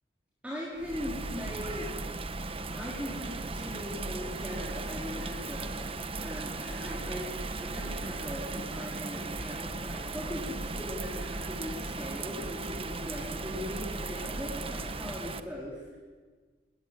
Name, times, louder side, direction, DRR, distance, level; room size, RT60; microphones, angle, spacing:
voice 1, 0.4-1.9 2.7-5.7 6.2-16.0, left 1 dB, 10° right, -5 dB, 4.5 m, -40 dB
Bird vocalization bird call bird song / Rain, 0.8-15.4, right 2 dB, 30° right, 1.3 m, -37 dB
23.5 x 20.0 x 9.7 m, 1.4 s
head